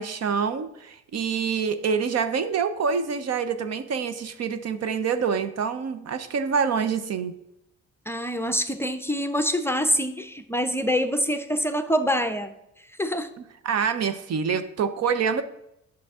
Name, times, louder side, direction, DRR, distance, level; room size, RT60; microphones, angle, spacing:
voice 1, 0.0-7.3 13.6-15.4, right 6 dB, 55° right, 10 dB, 0.7 m, -26 dB
voice 2, 8.1-12.5 13.0-13.3, equal, 10° left, 8 dB, 0.5 m, -25 dB
8.5 x 6.2 x 3.6 m, 0.81 s
cardioid pair, 90°, 30 cm